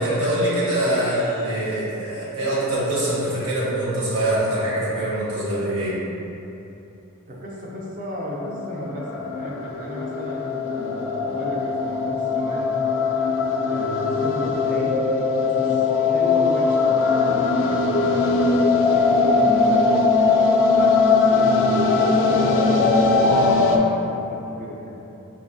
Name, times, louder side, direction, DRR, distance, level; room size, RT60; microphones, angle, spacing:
voice 1, 0.0-6.0, right 1 dB, 80° right, -8 dB, 1.1 m, -23 dB
voice 2, 7.3-12.7 13.7-25.0, equal, 40° right, -3 dB, 0.5 m, -35 dB
sound 1, 8.3-23.8, left 4 dB, 60° left, 0.3 m, -20 dB
4.3 x 2.7 x 2.6 m, 2.9 s
head